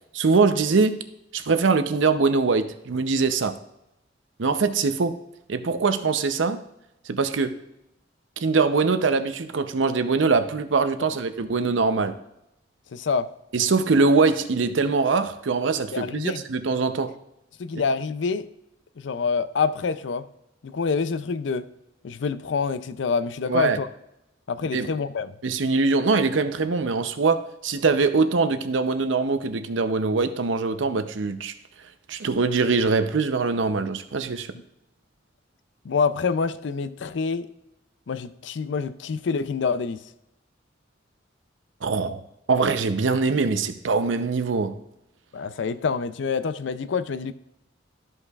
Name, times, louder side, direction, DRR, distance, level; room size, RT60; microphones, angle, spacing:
voice 1, 0.1-1.0 1.3-3.5 4.4-5.1 5.5-6.6 7.1-7.6 8.4-12.2 13.5-17.1 23.5-23.8 24.7-24.9 25.4-31.5 32.1-34.5 41.8-42.2 42.5-44.8, right 4 dB, 80° right, 0.6 m, -22 dB
voice 2, 12.9-13.3 15.9-16.4 17.6-18.5 19.0-20.3 20.6-21.7 22.0-23.9 24.5-25.4 35.8-37.5 38.1-40.0 45.3-47.3, left 5 dB, 70° left, 0.4 m, -26 dB
13.5 x 5.5 x 2.4 m
head